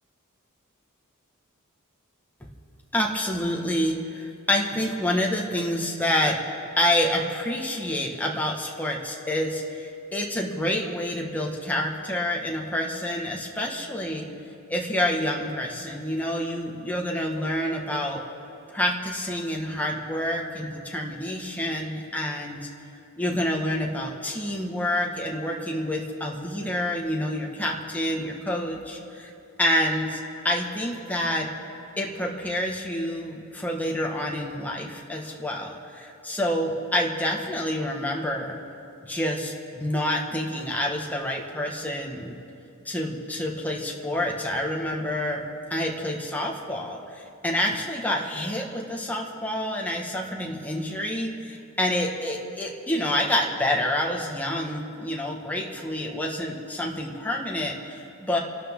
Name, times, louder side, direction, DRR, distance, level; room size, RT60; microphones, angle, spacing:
voice 1, 2.9-6.4 6.8-14.3 14.7-18.2 18.7-22.6 23.2-29.3 29.6-30.2 30.4-31.5 32.0-38.6 39.0-42.4 42.9-45.4 45.7-58.4, left 1 dB, 5° left, -1 dB, 1.6 m, -28 dB
29.0 x 12.5 x 3.8 m, 2.6 s
head